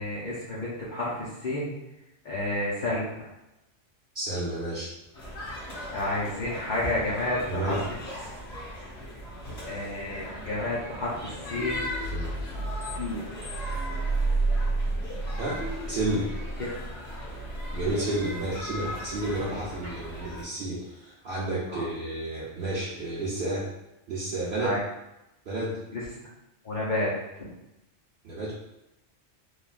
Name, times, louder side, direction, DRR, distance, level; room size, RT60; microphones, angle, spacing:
voice 1, 0.0-1.7 2.2-3.3 5.9-7.8 9.7-11.8 12.9-13.2 16.6-16.7 21.7-21.8 24.6-24.8 25.9-26.0 26.6-27.1 27.4-27.5, left 2 dB, 50° left, -8 dB, 0.7 m, -30 dB
voice 2, 4.1-4.9 7.5-7.8 12.1-12.3 15.4-15.6 15.9-16.3 17.7-23.7 24.1-24.8 25.5-25.8 28.2-28.5, right 2 dB, 60° right, -7 dB, 0.7 m, -31 dB
sound 1, 5.1-20.4, left 1 dB, 70° left, 1.7 m, -39 dB
sound 2, 10.1-17.9, right 2 dB, 80° right, 1.0 m, -32 dB
3.2 x 2.2 x 2.4 m, 0.91 s
omnidirectional pair, 1.2 m